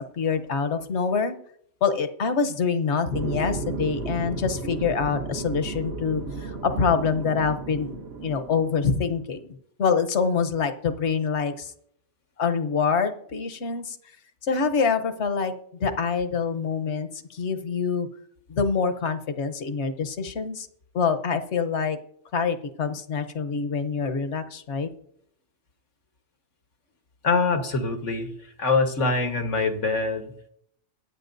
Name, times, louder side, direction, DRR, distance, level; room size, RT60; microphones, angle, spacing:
voice 1, 0.0-1.3 1.8-7.9 8.2-9.5 9.8-11.7 12.4-14.0 14.4-15.5 15.8-18.1 18.5-20.7 20.9-22.0 22.3-24.9, left 5 dB, 65° left, 8 dB, 1.2 m, -25 dB
sound 1, 3.1-9.1, right 3 dB, 60° right, 1.4 m, -34 dB
voice 2, 27.2-28.3 28.6-30.5, left 3 dB, 90° left, 5 dB, 1.7 m, -24 dB
22.5 x 9.7 x 2.6 m, 0.69 s
omnidirectional pair, 1.2 m